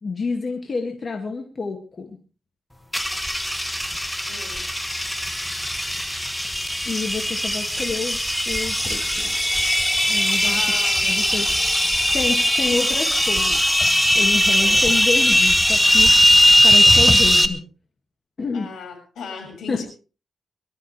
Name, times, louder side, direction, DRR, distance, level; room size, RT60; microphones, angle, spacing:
voice 1, 0.0-2.2 6.9-8.2 8.5-9.4 10.1-10.6 11.0-11.5 12.1-13.6 14.1-16.1 16.6-17.6 18.4-18.7 19.7-19.8, left 4 dB, 40° left, 3 dB, 2.2 m, -28 dB
sound 1, 2.9-17.5, equal, 5° left, 1.2 m, -19 dB
voice 2, 4.3-4.7 10.4-11.5 14.5-14.9 18.5-19.9, left 5 dB, 80° left, 4 dB, 6.6 m, -37 dB
23.0 x 13.5 x 3.4 m, 0.35 s
cardioid pair, 110°, 0 cm